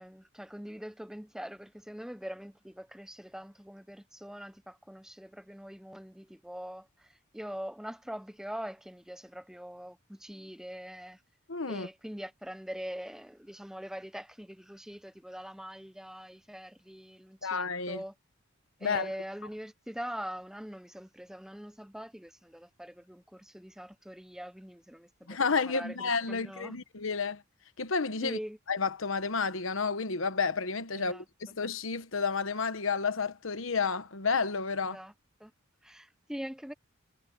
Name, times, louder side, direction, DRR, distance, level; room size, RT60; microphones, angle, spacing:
voice 1, 0.0-11.2 11.7-18.1 18.8-26.8 28.2-28.6 30.9-31.2 34.8-35.1 35.4-35.5 35.8-36.7, equal, ahead, 0.7 m, -43 dB
voice 2, 11.5-11.9 17.4-18.0 18.8-19.1 25.3-27.4 27.8-28.4 28.7-35.0, left 5 dB, 70° left, 1.2 m, -31 dB
head